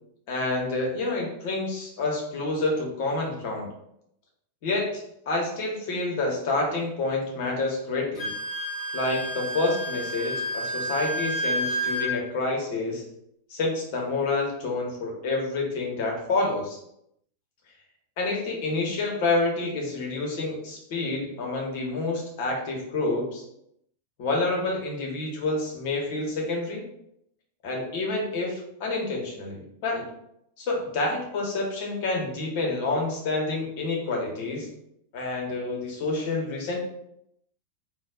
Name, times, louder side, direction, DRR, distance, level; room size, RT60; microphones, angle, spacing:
voice 1, 0.3-3.7 4.6-8.3 8.9-13.0 13.5-16.8 18.2-23.4 24.2-26.8 27.6-30.1 30.6-34.7 35.1-36.8, left 2 dB, 50° left, 0 dB, 1.0 m, -28 dB
Wind instrument woodwind instrument, 8.2-12.1, right 1 dB, 15° right, 1.4 m, -30 dB
4.0 x 2.3 x 2.4 m, 0.76 s
figure-of-eight pair, 90°, 0 cm